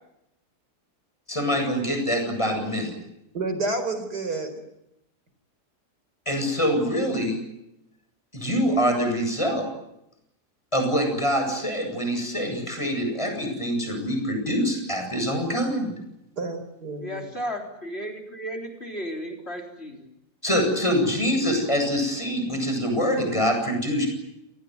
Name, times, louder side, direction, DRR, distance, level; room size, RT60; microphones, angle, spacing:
voice 1, 1.3-2.9 6.3-7.4 8.3-9.7 10.7-15.9 20.4-24.1, equal, 20° left, 4 dB, 8.2 m, -25 dB
voice 2, 3.3-4.5 16.4-17.2, right 3 dB, 75° right, 9 dB, 5.0 m, -29 dB
voice 3, 17.0-20.1, equal, 40° left, 2 dB, 4.1 m, -34 dB
29.0 x 19.5 x 9.6 m, 0.85 s
omnidirectional pair, 1.7 m